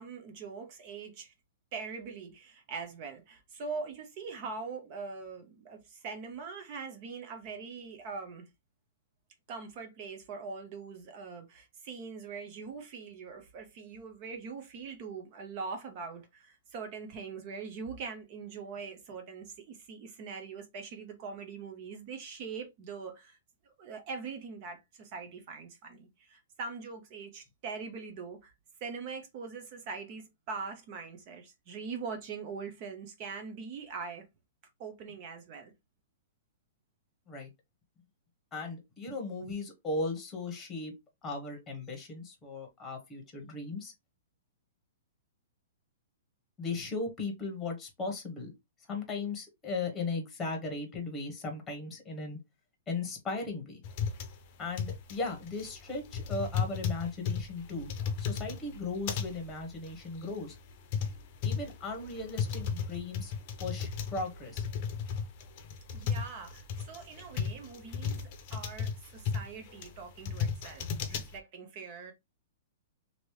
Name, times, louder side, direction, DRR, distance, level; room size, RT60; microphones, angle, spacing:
voice 1, 0.0-1.3 1.7-8.5 9.5-23.4 23.6-28.5 28.8-34.2 34.8-35.7 65.9-72.1, right 5 dB, 35° right, 0.7 m, -42 dB
voice 2, 38.5-40.9 41.2-43.9 46.6-48.5 48.8-52.4 52.9-53.8 54.6-57.9 58.2-60.6 61.4-63.3 63.6-64.6, left 3 dB, 10° left, 1.0 m, -37 dB
sound 1, 53.8-71.4, left 6 dB, 40° left, 0.7 m, -35 dB
3.0 x 2.7 x 3.0 m
hypercardioid pair, 155°, 0 cm